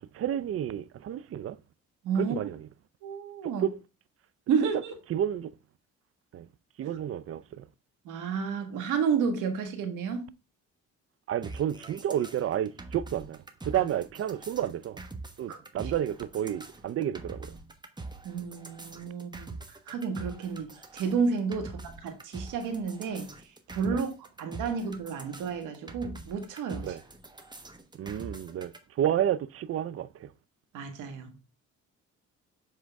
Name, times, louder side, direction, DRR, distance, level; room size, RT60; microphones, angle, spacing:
voice 1, 0.0-1.6 2.2-2.7 3.4-3.8 5.1-5.5 6.3-6.5 6.8-7.7 11.3-15.0 15.4-17.6 23.9-24.0 26.8-27.0 28.0-30.3, right 10 dB, 50° right, 0.5 m, -31 dB
voice 2, 2.0-2.4 3.0-3.6 4.5-4.9 8.0-10.2 13.7-13.8 15.5-15.6 18.2-23.3 23.7-24.1 24.4-26.9 30.7-31.3, right 6 dB, 85° right, 1.6 m, -31 dB
sound 1, 11.4-28.8, right 3 dB, 15° right, 1.1 m, -44 dB
7.6 x 3.7 x 3.4 m
cardioid pair, 90°, 30 cm